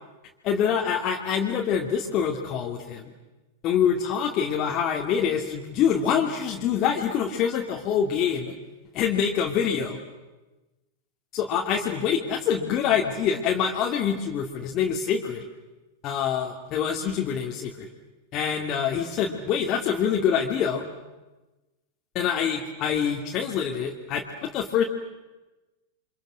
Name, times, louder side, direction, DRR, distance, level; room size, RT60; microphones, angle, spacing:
voice 1, 0.4-3.1 3.6-8.5 8.9-10.0 11.3-15.4 16.0-17.9 18.3-20.8 22.1-24.8, left 7 dB, 40° left, 0 dB, 2.6 m, -25 dB
29.5 x 26.0 x 6.5 m, 1.1 s
hypercardioid pair, 100°, 0 cm